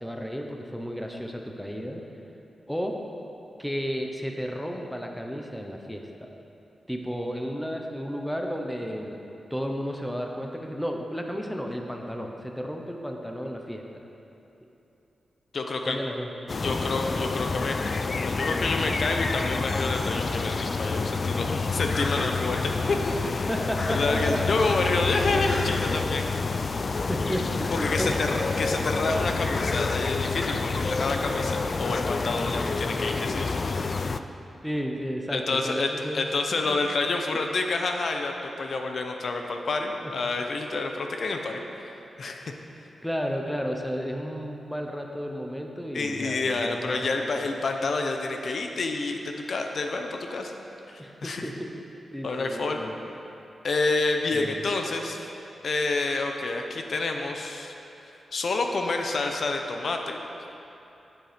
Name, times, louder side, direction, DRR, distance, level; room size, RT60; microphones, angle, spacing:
voice 1, 0.0-2.0 2.7-2.9 3.6-6.3 6.9-9.2 9.5-13.8 15.9-16.3 22.2-22.3 23.5-24.4 27.1-28.1 34.6-36.3 36.7-36.8 40.0-40.1 43.0-47.5 51.0-51.8 52.1-52.9 54.3-54.7, equal, ahead, 2 dB, 0.8 m, -33 dB
voice 2, 15.5-16.0 16.6-17.8 18.1-23.5 23.9-26.7 27.8-33.6 35.3-41.6 42.2-42.5 45.9-50.5 50.9-51.4 52.2-52.9 53.6-55.3 55.6-57.7 58.3-60.2, left 3 dB, 55° left, 4 dB, 0.7 m, -28 dB
sound 1, 16.5-34.2, left 4 dB, 40° left, 0.3 m, -28 dB
10.5 x 7.7 x 5.1 m, 2.9 s
wide cardioid pair, 130°, 0 cm